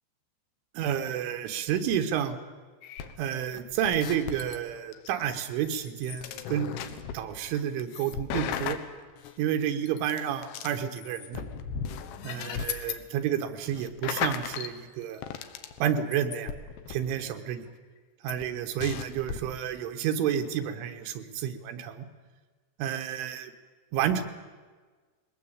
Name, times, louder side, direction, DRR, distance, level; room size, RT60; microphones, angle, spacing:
voice 1, 0.8-2.4 3.2-6.7 7.1-8.8 9.4-11.4 12.2-15.2 15.8-16.5 16.9-17.7 18.2-22.1 22.8-23.5 23.9-24.2, right 9 dB, 85° right, 7 dB, 3.9 m, -30 dB
sound 1, 2.8-4.6 4.9-9.3 9.9-13.0 13.3-13.4 13.7-14.7 15.0-17.1 18.3-18.4 18.8-19.4, left 8 dB, 70° left, 3.2 m, -36 dB
21.5 x 19.0 x 8.9 m, 1.4 s
omnidirectional pair, 5.4 m